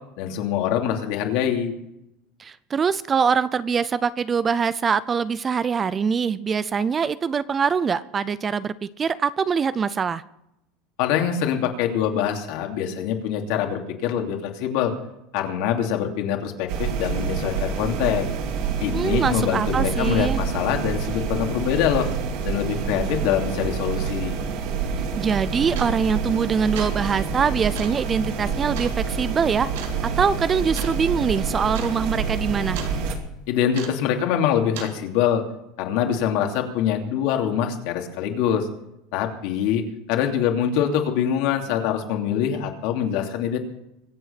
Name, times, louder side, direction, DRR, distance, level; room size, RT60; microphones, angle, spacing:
voice 1, 0.2-1.7 11.0-14.9 15.3-18.3 18.8-22.1 22.4-24.4 33.5-35.4 35.8-38.7 39.1-43.6, left 9 dB, 60° left, 3 dB, 2.9 m, -24 dB
voice 2, 2.4-10.2 18.9-20.4 25.2-29.7 30.0-32.8, right 6 dB, 20° right, 17 dB, 0.4 m, -23 dB
sound 1, 16.7-33.1, right 6 dB, 55° right, 2.6 m, -27 dB
sound 2, 24.8-25.0 25.7-26.1 26.6-27.0 27.7-28.0 28.7-29.0 29.7-30.0 30.7-31.0 31.3-31.4 31.7-32.0 32.2-33.0 33.7-34.1 34.7-35.0, right 7 dB, 90° right, 3.2 m, -36 dB
24.0 x 8.0 x 5.9 m, 0.83 s
supercardioid pair, 160°, 0 cm